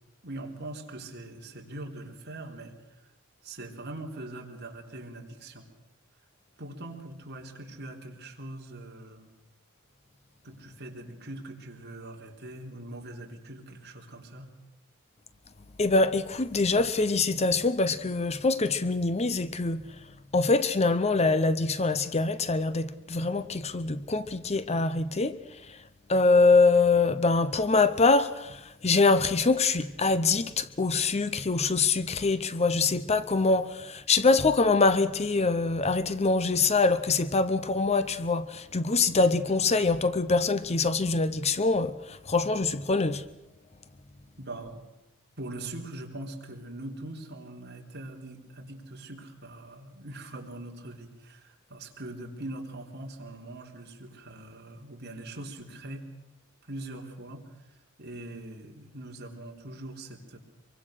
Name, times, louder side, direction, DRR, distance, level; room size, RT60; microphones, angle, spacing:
voice 1, 0.2-2.7 3.4-5.7 6.6-9.3 10.4-14.5 44.4-44.8 45.4-56.1 56.7-57.4 58.0-60.4, right 1 dB, 50° right, 3.4 m, -42 dB
voice 2, 15.8-19.8 20.3-25.4 25.7-25.8 26.1-43.2, left 3 dB, 30° left, 0.8 m, -24 dB
25.0 x 23.5 x 6.5 m
head